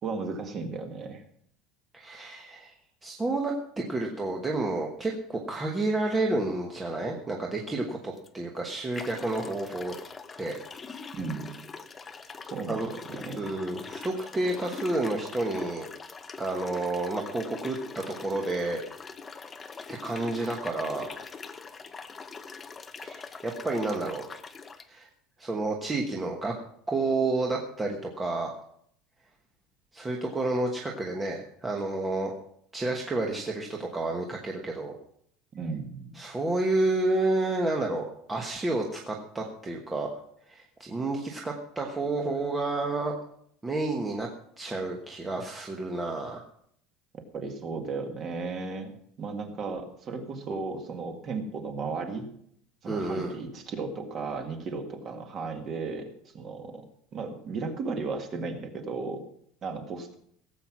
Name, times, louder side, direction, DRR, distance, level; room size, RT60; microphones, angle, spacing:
voice 1, 0.0-1.2 11.1-11.6 12.5-13.5 35.5-36.1 47.3-52.3 52.8-56.8 57.1-59.2 59.6-60.2, right 4 dB, 25° right, 5 dB, 1.8 m, -35 dB
voice 2, 1.9-2.7 3.0-9.9 10.4-10.5 12.7-12.9 13.4-15.9 16.4-18.8 19.9-21.1 23.0-24.2 24.9-25.1 25.4-26.5 26.9-28.5 29.9-32.3 32.7-35.0 36.1-40.1 40.5-43.1 43.6-44.3 44.6-46.4 52.9-53.3, right 2 dB, 10° right, 0 dB, 1.2 m, -30 dB
sound 1, 8.2-8.3 8.9-24.9, left 5 dB, 15° left, 0.7 m, -43 dB
17.0 x 7.9 x 6.0 m, 0.68 s
cardioid pair, 180°, 0 cm